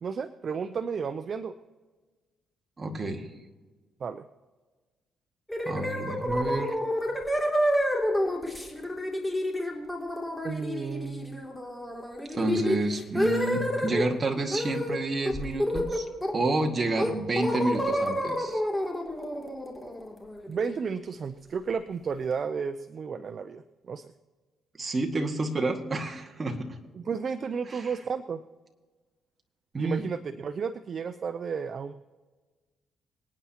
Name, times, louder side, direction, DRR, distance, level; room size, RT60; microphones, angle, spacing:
voice 1, 0.0-1.5 4.0-4.2 10.4-11.4 20.5-24.1 27.0-28.4 29.8-31.9, right 6 dB, 50° right, 11 dB, 0.6 m, -33 dB
voice 2, 2.8-3.3 5.7-6.7 12.3-16.1 16.3-18.6 24.8-26.8 27.7-28.0 29.7-30.1, right 2 dB, 30° right, 2 dB, 1.9 m, -29 dB
sound 1, 5.5-14.0 14.5-15.0 15.3-16.5 17.0-20.7, equal, 10° left, 2.7 m, -29 dB
25.5 x 9.6 x 2.9 m, 1.3 s
cardioid pair, 90°, 0 cm